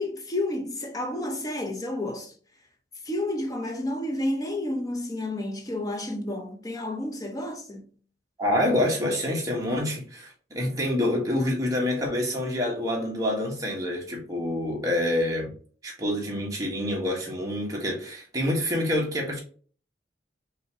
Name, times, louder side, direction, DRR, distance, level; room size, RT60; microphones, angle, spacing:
voice 1, 0.0-2.3 3.0-7.9, left 1 dB, 20° left, 0.7 m, -30 dB
voice 2, 8.4-15.5 15.8-19.4, left 1 dB, 20° right, 1.5 m, -27 dB
5.4 x 2.8 x 2.8 m
head